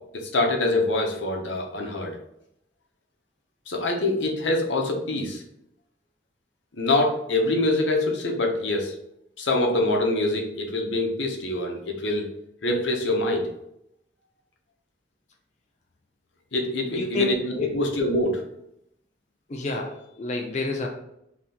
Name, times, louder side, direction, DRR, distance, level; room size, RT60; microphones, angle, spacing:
voice 1, 0.1-2.2 3.7-5.4 6.7-8.9 9.4-12.3 12.6-13.5 16.5-18.4, left 2 dB, 85° left, 2 dB, 0.8 m, -25 dB
voice 2, 16.9-17.7 19.5-20.9, left 3 dB, 40° left, 1 dB, 0.4 m, -29 dB
3.5 x 2.9 x 4.1 m, 0.79 s
head